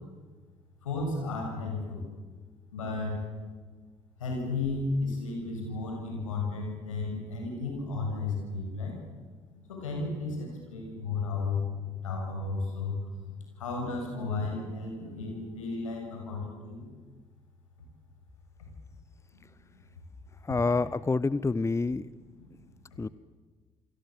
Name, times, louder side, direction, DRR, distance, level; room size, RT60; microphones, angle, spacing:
voice 1, 0.8-2.0 2.7-3.2 4.2-9.0 9.5-13.0 13.2-16.9 22.3-22.6, left 3 dB, 80° left, 1 dB, 6.8 m, -33 dB
voice 2, 20.4-22.1 23.0-23.1, left 3 dB, 15° left, 19 dB, 0.8 m, -27 dB
29.0 x 24.5 x 7.7 m, 1.4 s
figure-of-eight pair, 45°, 17 cm